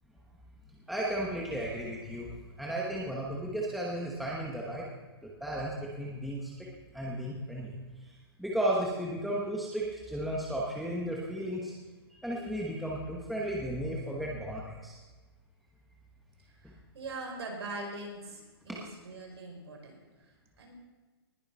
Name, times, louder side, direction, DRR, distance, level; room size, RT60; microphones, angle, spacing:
voice 1, 0.9-2.3 2.6-4.8 5.2-6.7 6.9-7.7 8.0-11.7 12.1-15.0 16.6-16.7 18.7-18.8, right 1 dB, ahead, -4 dB, 1.1 m, -34 dB
voice 2, 16.6-20.7, right 2 dB, 85° right, 0 dB, 4.8 m, -42 dB
19.5 x 6.9 x 5.4 m, 1.3 s
hypercardioid pair, 165°, 13 cm